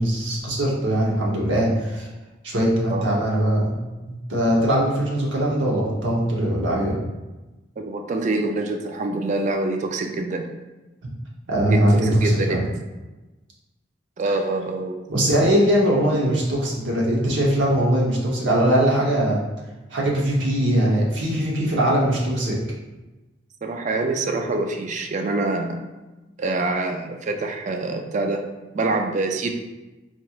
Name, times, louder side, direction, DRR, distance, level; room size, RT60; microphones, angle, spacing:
voice 1, 0.0-2.1 2.4-3.7 4.1-7.0 11.5-12.6 15.1-19.4 19.9-22.6, right 1 dB, 75° right, -3 dB, 0.9 m, -21 dB
voice 2, 7.8-10.5 11.7-12.7 14.2-15.3 23.6-25.8 26.4-28.4 28.7-29.5, right 2 dB, 40° right, 4 dB, 0.3 m, -25 dB
4.2 x 3.0 x 2.4 m, 1.1 s
head